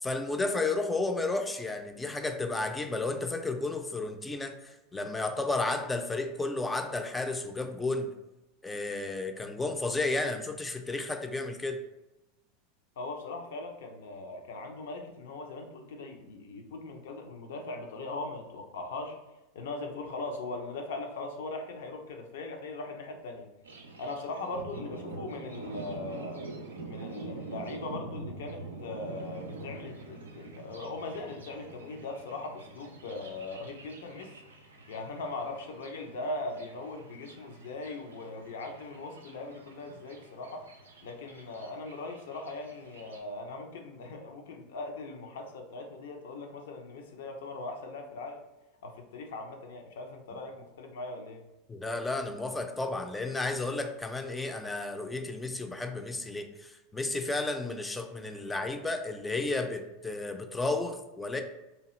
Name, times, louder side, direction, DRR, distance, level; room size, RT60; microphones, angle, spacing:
voice 1, 0.0-8.1 8.6-11.8 51.7-61.4, left 2 dB, 15° left, 6 dB, 0.4 m, -32 dB
voice 2, 13.0-19.2 19.5-23.5 24.0-26.4 26.9-34.3 34.9-40.8 41.0-48.4 48.8-51.4, left 2 dB, 70° left, 3 dB, 0.5 m, -40 dB
Thunder, 23.6-43.2, right 3 dB, 85° right, 0.4 m, -45 dB
2.8 x 2.3 x 3.0 m, 1.0 s
hypercardioid pair, 90°, 0 cm